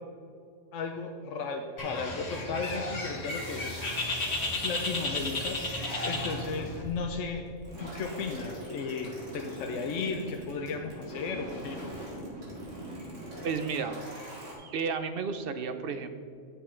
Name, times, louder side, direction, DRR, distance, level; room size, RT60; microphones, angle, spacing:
voice 1, 0.7-3.8 4.6-7.4 7.8-11.8, left 4 dB, 80° left, 3 dB, 1.0 m, -35 dB
Bird, 1.8-6.8, left 2 dB, 60° left, 1.7 m, -33 dB
sound 1, 3.3-14.5, right 1 dB, 80° right, 2.3 m, -43 dB
voice 2, 13.4-13.9 14.6-16.1, right 5 dB, 55° right, 9 dB, 0.8 m, -32 dB
9.5 x 6.8 x 4.4 m, 2.3 s
omnidirectional pair, 1.3 m